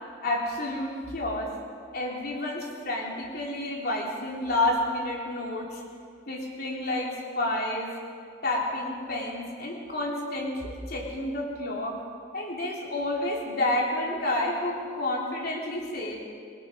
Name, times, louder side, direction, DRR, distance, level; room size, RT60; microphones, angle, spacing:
voice 1, 0.2-1.5 1.9-5.8 6.3-7.9 8.4-12.0 12.3-16.2, left 1 dB, 50° left, -1 dB, 3.5 m, -30 dB
25.5 x 25.5 x 5.1 m, 2.3 s
head